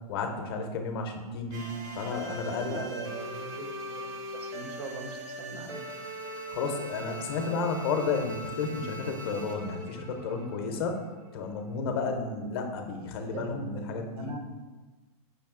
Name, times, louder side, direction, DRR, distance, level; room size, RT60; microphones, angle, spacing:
voice 1, 0.1-2.8 6.5-11.0 11.3-14.4, left 4 dB, 40° left, 5 dB, 0.5 m, -32 dB
sound 1, 1.5-11.4, right 1 dB, 30° right, 0.4 m, -40 dB
voice 2, 2.6-5.8 13.3-14.4, right 3 dB, 80° right, 5 dB, 0.7 m, -40 dB
5.1 x 2.6 x 3.6 m, 1.2 s
hypercardioid pair, 170°, 20 cm